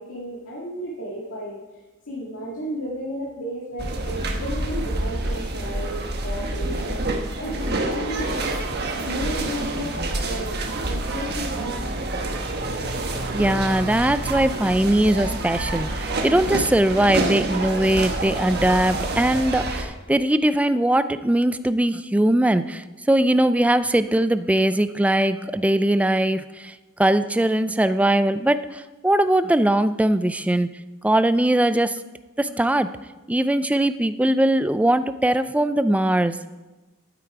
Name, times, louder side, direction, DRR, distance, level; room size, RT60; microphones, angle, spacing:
voice 1, 0.0-1.6 2.1-7.0 7.4-8.5 9.0-10.6 10.8-11.8, equal, 75° left, -5 dB, 2.1 m, -33 dB
sound 1, 3.8-19.8, right 2 dB, 50° right, 1.2 m, -27 dB
voice 2, 13.3-26.7 27.0-30.7 31.0-32.0 32.4-32.9 33.3-36.5, right 1 dB, 5° right, 12 dB, 0.4 m, -20 dB
12.0 x 8.6 x 4.9 m, 1.2 s
head